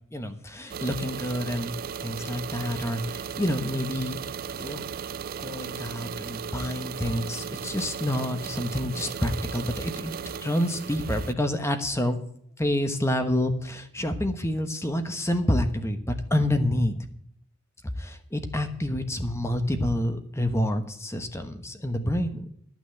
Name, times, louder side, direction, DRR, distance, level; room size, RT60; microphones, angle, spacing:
voice 1, 0.1-1.7 2.0-4.2 4.6-4.8 5.4-12.2 12.6-16.9 18.0-22.5, left 1 dB, 15° left, 7 dB, 1.1 m, -28 dB
sound 1, 0.7-11.3, right 7 dB, 45° right, 0.4 m, -36 dB
12.0 x 6.1 x 7.8 m, 0.65 s
head